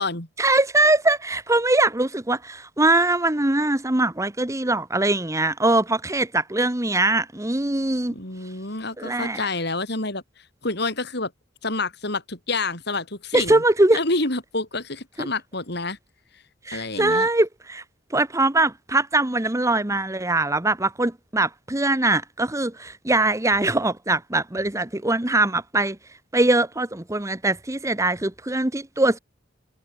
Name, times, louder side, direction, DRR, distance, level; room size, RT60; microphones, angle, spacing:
voice 1, 0.4-8.1 9.0-9.5 13.3-14.0 15.2-15.3 16.6-17.8 18.1-26.0 26.3-29.2, right 2 dB, 15° right, 1.2 m, -22 dB
voice 2, 8.1-10.2 10.6-11.3 11.6-13.6 13.9-16.0 16.7-17.3, left 3 dB, 60° left, 6.7 m, -28 dB
head